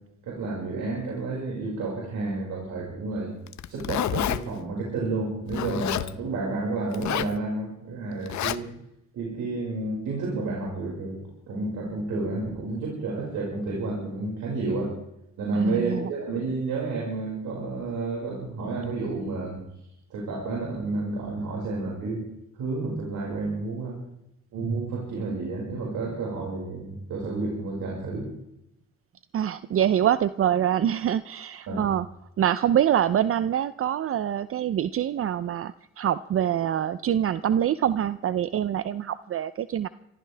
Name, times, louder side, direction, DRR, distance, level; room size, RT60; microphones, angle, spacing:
voice 1, 0.2-3.3 3.7-8.7 9.1-14.9 15.4-19.6 20.1-22.2 22.6-24.0 24.5-28.3 31.7-31.8, right 3 dB, 80° right, -3 dB, 5.5 m, -30 dB
Zipper (clothing), 3.5-4.4 5.5-6.1 6.9-7.4 8.3-8.6, left 12 dB, 65° left, 0.8 m, -28 dB
voice 2, 15.6-16.1 29.3-32.1 32.4-39.9, right 10 dB, 50° right, 15 dB, 0.6 m, -25 dB
25.0 x 15.0 x 3.4 m, 0.85 s
cardioid pair, 90°, 30 cm